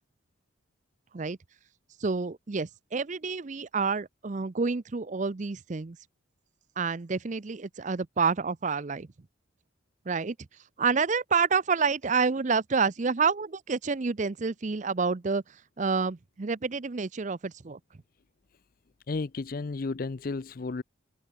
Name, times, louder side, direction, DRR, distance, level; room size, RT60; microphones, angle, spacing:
voice 1, 2.0-6.0 6.8-9.1 10.1-10.4 10.8-15.4 15.8-17.8, right 5 dB, 35° right, 0.5 m, -28 dB
voice 2, 19.1-20.8, left 3 dB, 45° left, 0.5 m, -33 dB
open air
head